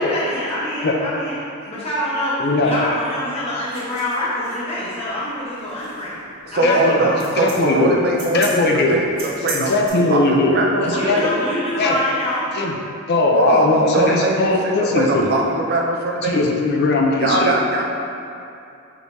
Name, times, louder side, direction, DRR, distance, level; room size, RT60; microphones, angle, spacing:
voice 1, 0.0-1.4 1.6-2.4 2.6-6.2 6.5-7.2 10.9-12.5, left 1 dB, 30° left, -8 dB, 0.9 m, -25 dB
voice 2, 2.4-2.7 6.6-7.0 7.4-8.0 8.3-9.0 9.5-11.2 11.8-11.9 12.6-12.7 13.1-15.3 16.2-17.5, left 2 dB, 50° left, 1 dB, 0.4 m, -19 dB
sound 1, 3.7-9.9, right 3 dB, 75° right, 1.4 m, -35 dB
voice 3, 6.5-9.0 9.4-9.7 10.1-11.3 13.4-16.4 17.2-17.8, right 2 dB, 45° right, -1 dB, 0.5 m, -21 dB
4.9 x 3.3 x 2.7 m, 2.6 s
head